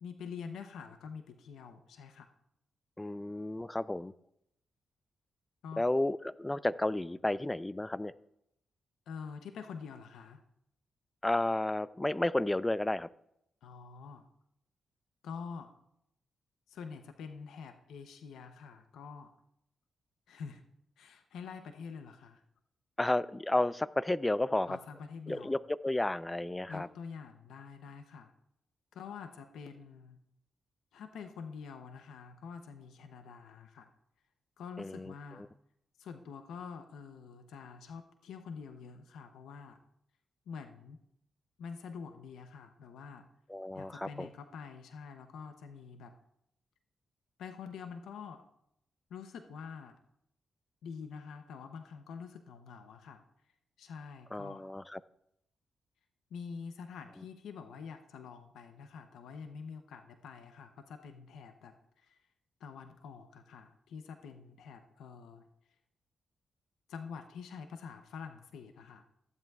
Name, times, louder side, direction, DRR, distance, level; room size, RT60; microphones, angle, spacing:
voice 1, 0.0-2.3 5.6-5.8 9.1-10.4 13.6-14.2 15.2-15.7 16.7-19.3 20.3-20.6 21.0-22.4 24.7-25.5 26.7-28.3 28.9-30.2 30.9-33.9 34.6-35.5 36.0-39.8 40.5-41.0 41.6-43.3 43.7-46.2 47.4-48.4 49.1-50.0 50.8-53.2 53.8-54.6 56.3-62.2 62.6-65.5 66.9-69.0, left 6 dB, 90° left, 7 dB, 0.7 m, -46 dB
voice 2, 3.0-4.1 5.8-8.1 11.2-13.1 23.0-24.8 25.3-26.9 34.8-35.1 43.5-44.3 54.3-55.0, left 1 dB, 15° left, 17 dB, 0.4 m, -32 dB
15.0 x 10.5 x 2.4 m, 0.78 s
cardioid pair, 65°, 0 cm